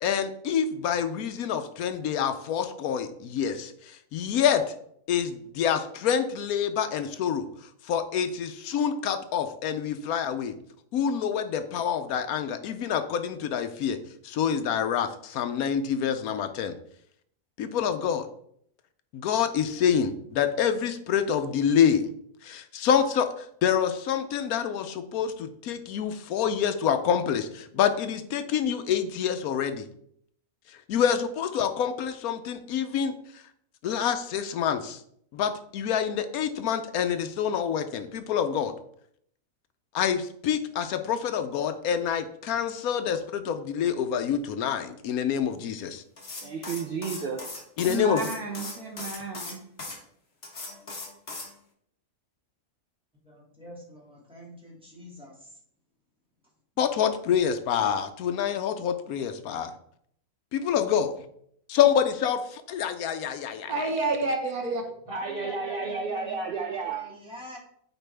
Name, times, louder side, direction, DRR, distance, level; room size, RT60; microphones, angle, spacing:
voice 1, 0.0-4.6 5.1-7.5 7.8-10.5 10.9-14.0 14.2-16.8 17.6-18.3 19.1-22.0 22.4-29.9 30.9-33.4 33.8-35.0 35.3-38.7 39.9-46.0 47.8-48.3 56.8-59.7 60.5-61.1 61.7-63.7, left 8 dB, 80° left, 9 dB, 1.1 m, -27 dB
sound 1, 46.2-50.0 50.4-51.5, left 3 dB, 45° left, 1.6 m, -38 dB
voice 2, 46.4-47.5 65.1-67.1, right 5 dB, 55° right, 4 dB, 0.6 m, -32 dB
voice 3, 47.9-49.6 63.7-64.8, right 2 dB, 80° right, 2 dB, 1.8 m, -30 dB
voice 4, 53.2-55.6 64.9-67.6, left 1 dB, 5° right, -5 dB, 2.2 m, -45 dB
9.0 x 4.5 x 3.4 m, 0.67 s
omnidirectional pair, 1.6 m